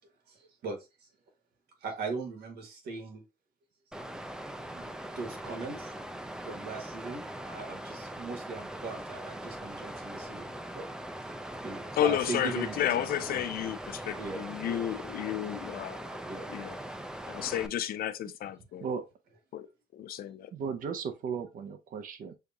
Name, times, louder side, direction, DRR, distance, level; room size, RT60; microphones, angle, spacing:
voice 1, 0.3-0.8 1.8-3.2 4.1-4.2 4.7-4.9 5.1-5.9 6.4-10.9 11.6-13.4 14.2-14.8 16.3-16.8, right 4 dB, 90° right, 1.6 m, -39 dB
Water, 3.9-17.7, right 1 dB, 5° right, 0.3 m, -41 dB
voice 2, 12.0-16.2 16.5-16.8 17.3-18.9 19.5-19.7 19.9-20.5, left 11 dB, 65° left, 0.4 m, -32 dB
voice 3, 20.5-22.3, right 6 dB, 55° right, 0.6 m, -35 dB
6.5 x 2.4 x 2.6 m
cardioid pair, 150°, 16 cm